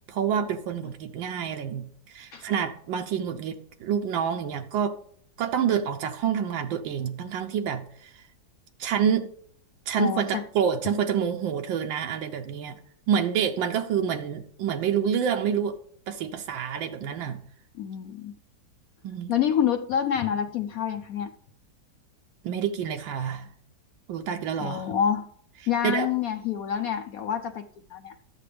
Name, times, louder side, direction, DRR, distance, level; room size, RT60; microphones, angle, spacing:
voice 1, 0.0-5.0 5.4-8.2 8.8-9.3 9.9-12.8 13.1-15.8 16.1-17.4 19.0-19.3 22.4-23.5 24.1-24.9 25.8-26.1, right 8 dB, 90° right, 1.4 m, -28 dB
voice 2, 10.0-10.4 17.8-18.3 19.3-21.3 24.6-25.3 25.7-28.1, left 9 dB, 75° left, 0.8 m, -27 dB
13.0 x 8.7 x 3.3 m
omnidirectional pair, 2.0 m